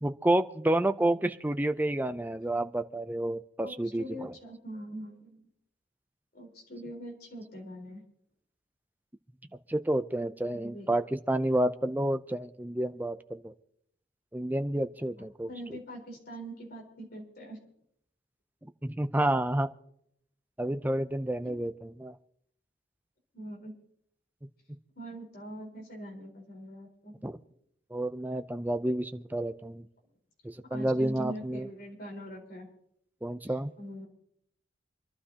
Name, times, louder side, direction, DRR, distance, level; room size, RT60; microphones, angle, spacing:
voice 1, 0.0-4.3 9.7-13.5 14.3-15.8 18.6-19.7 20.6-22.1 27.2-27.4 27.9-29.8 30.4-31.7 33.2-33.7, right 1 dB, 10° right, 9 dB, 0.5 m, -30 dB
voice 2, 3.6-5.5 6.3-8.0 10.5-10.9 15.2-17.6 23.3-23.7 24.9-27.1 30.7-32.7 33.4-34.1, equal, 55° left, 0 dB, 4.4 m, -43 dB
26.5 x 12.0 x 2.9 m, 0.71 s
head